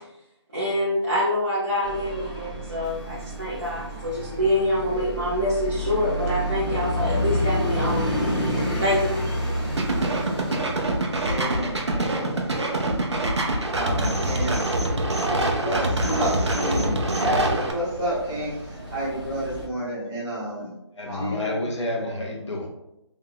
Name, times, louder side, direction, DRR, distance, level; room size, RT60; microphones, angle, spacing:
voice 1, 0.5-8.1 8.8-9.2, left 1 dB, 35° right, -10 dB, 0.8 m, -25 dB
sound 1, 1.8-19.7, equal, 15° left, 1.0 m, -31 dB
sound 2, 9.8-17.7, right 1 dB, 65° right, 0.8 m, -25 dB
voice 2, 11.2-12.5 13.7-14.7 15.2-20.7 21.1-21.6, right 1 dB, 10° right, -13 dB, 1.3 m, -30 dB
voice 3, 20.9-22.7, left 1 dB, 75° left, -2 dB, 1.2 m, -29 dB
3.7 x 3.5 x 2.3 m, 0.87 s
figure-of-eight pair, 175°, 15 cm